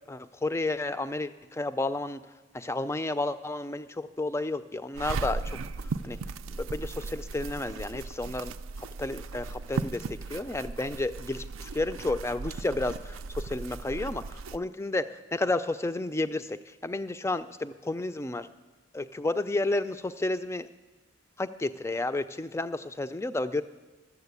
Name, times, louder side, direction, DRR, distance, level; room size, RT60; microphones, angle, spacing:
voice 1, 0.1-2.2 2.5-5.6 6.0-6.2 6.5-18.5 18.9-20.7 21.4-23.6, left 2 dB, 15° left, 12 dB, 0.3 m, -31 dB
sound 1, 5.0-14.6, right 4 dB, 80° right, 0.4 m, -37 dB
12.5 x 7.2 x 8.2 m, 1.2 s
head